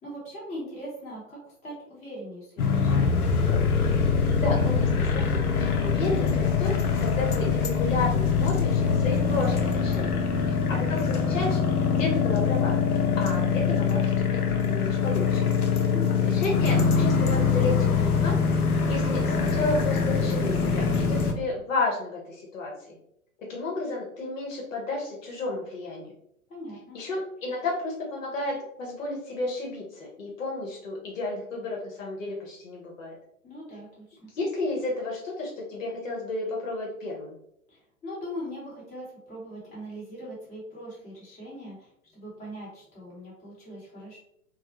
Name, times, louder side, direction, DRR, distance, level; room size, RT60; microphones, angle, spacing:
voice 1, 0.0-3.3 15.8-16.2 26.5-27.0 33.4-34.0 37.7-44.2, equal, 15° left, -6 dB, 1.1 m, -40 dB
sound 1, 2.6-21.3, left 5 dB, 85° left, 0.5 m, -24 dB
voice 2, 4.4-11.6 11.9-12.8 13.2-15.4 16.2-22.9 23.5-26.1 26.9-33.1 34.3-37.3, left 2 dB, 60° left, -1 dB, 0.9 m, -32 dB
2.2 x 2.1 x 2.9 m, 0.73 s
figure-of-eight pair, 110°, 43 cm